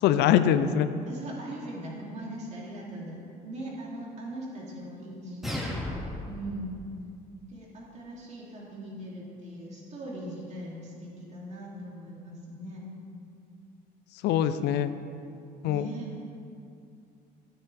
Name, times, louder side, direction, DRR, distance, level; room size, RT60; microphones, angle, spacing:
voice 1, 0.0-0.9 14.2-14.9 15.6-15.9, left 10 dB, 80° left, 12 dB, 0.5 m, -23 dB
voice 2, 1.1-5.6 6.2-6.8 7.5-12.8 15.6-16.2, right 1 dB, 40° right, -4 dB, 3.0 m, -40 dB
sound 1, 5.4-6.4, left 1 dB, ahead, 2.2 m, -33 dB
13.0 x 10.0 x 3.5 m, 2.5 s
cardioid pair, 110°, 17 cm